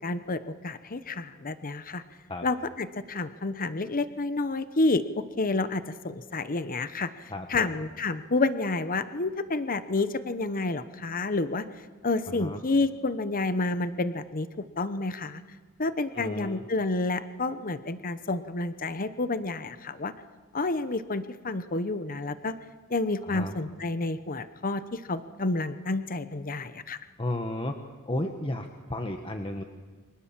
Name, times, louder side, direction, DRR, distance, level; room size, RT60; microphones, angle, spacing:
voice 1, 0.0-2.0 2.4-5.0 5.4-11.6 12.0-14.5 14.8-15.4 15.8-20.1 20.5-22.5 22.9-27.0, left 3 dB, 40° left, 12 dB, 1.0 m, -29 dB
voice 2, 7.3-7.8 12.3-12.6 16.1-16.6 23.2-23.5 27.2-27.8 28.1-29.6, left 1 dB, 25° left, 5 dB, 1.5 m, -33 dB
29.5 x 25.0 x 7.5 m, 1.4 s
head